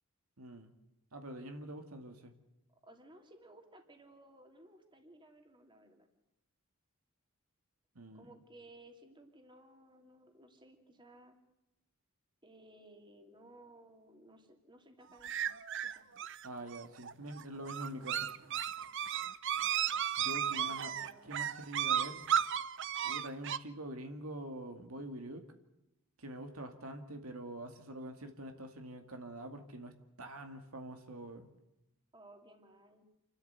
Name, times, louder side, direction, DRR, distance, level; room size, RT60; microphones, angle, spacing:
voice 1, 0.4-0.7 1.1-2.3 8.0-8.3 16.4-18.3 20.2-20.9 21.3-22.2 23.0-25.4 26.2-31.5, right 1 dB, 80° right, 6 dB, 2.3 m, -45 dB
voice 2, 2.8-6.1 8.1-11.4 12.4-15.3 15.8-16.0 20.5-21.3 32.1-33.1, right 1 dB, 20° right, 4 dB, 2.9 m, -58 dB
sound 1, 15.2-23.6, right 9 dB, 60° right, 0.8 m, -34 dB
28.5 x 13.0 x 8.3 m, 0.91 s
head